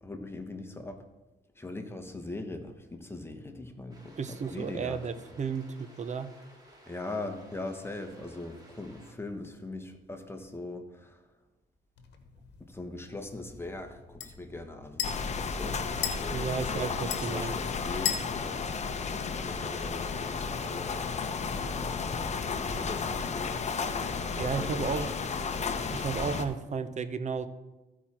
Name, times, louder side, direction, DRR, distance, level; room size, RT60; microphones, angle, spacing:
voice 1, 0.0-1.0 1.6-4.2 4.5-5.0 6.9-11.2 12.7-15.8 16.2-18.9 19.3-23.7 24.0-25.1 25.5-25.7, left 2 dB, 15° left, 5 dB, 1.2 m, -41 dB
sound 1, 3.9-9.1, right 1 dB, 20° right, 2.5 m, -56 dB
voice 2, 4.2-6.3 16.3-17.6 24.4-25.1 25.9-27.5, right 5 dB, 40° right, 12 dB, 0.7 m, -33 dB
sound 2, 12.0-19.8, left 8 dB, 85° left, 1.1 m, -40 dB
sound 3, 15.0-26.4, left 5 dB, 40° left, 0.8 m, -33 dB
14.5 x 4.8 x 4.3 m, 1.1 s
cardioid pair, 90°, 18 cm